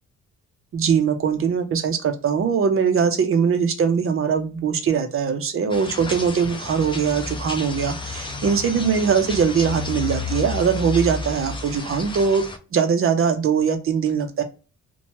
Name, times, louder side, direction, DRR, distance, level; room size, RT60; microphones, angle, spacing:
voice 1, 0.7-12.4 12.7-14.4, right 6 dB, 45° right, 8 dB, 0.6 m, -21 dB
sound 1, 5.7-12.6, left 4 dB, 15° left, 0.5 m, -31 dB
2.7 x 2.2 x 3.0 m, 0.33 s
cardioid pair, 90°, 30 cm